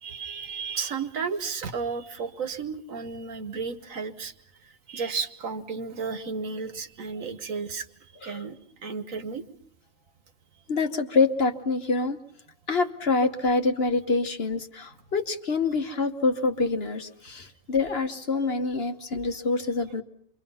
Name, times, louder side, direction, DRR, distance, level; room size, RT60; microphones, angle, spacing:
voice 1, 0.0-4.3 4.9-9.5, right 5 dB, 70° right, 9 dB, 1.6 m, -33 dB
voice 2, 10.7-12.2 12.7-20.0, left 3 dB, 45° left, 7 dB, 1.3 m, -26 dB
28.0 x 24.0 x 5.6 m, 0.66 s
omnidirectional pair, 1.5 m